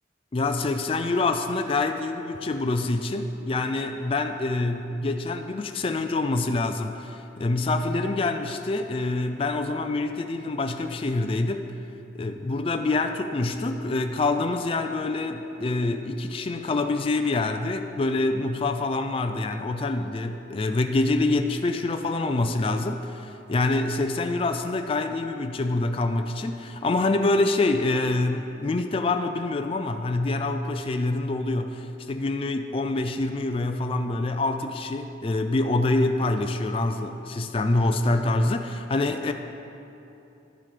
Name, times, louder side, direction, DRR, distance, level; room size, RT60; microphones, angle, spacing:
voice 1, 0.3-11.7 12.1-39.3, left 2 dB, 30° left, 6 dB, 0.3 m, -26 dB
11.5 x 7.6 x 5.0 m, 2.9 s
head